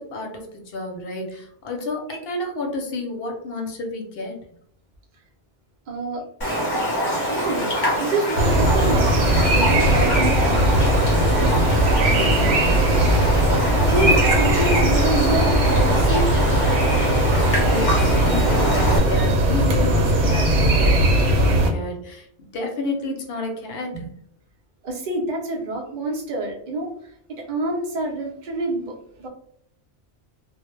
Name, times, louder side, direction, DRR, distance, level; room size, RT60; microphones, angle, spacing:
voice 1, 0.0-4.4 12.0-13.1 17.6-24.1, left 2 dB, 65° left, 3 dB, 0.7 m, -31 dB
voice 2, 5.9-6.2 7.0-9.2 9.5-10.8 13.8-16.2 24.8-29.3, right 2 dB, 50° right, -1 dB, 0.6 m, -27 dB
Raindrop, 6.4-19.0, equal, 30° left, 0.5 m, -25 dB
sound 1, 8.4-21.7, right 1 dB, 85° right, 0.9 m, -19 dB
2.1 x 2.1 x 3.0 m, 0.67 s
omnidirectional pair, 1.2 m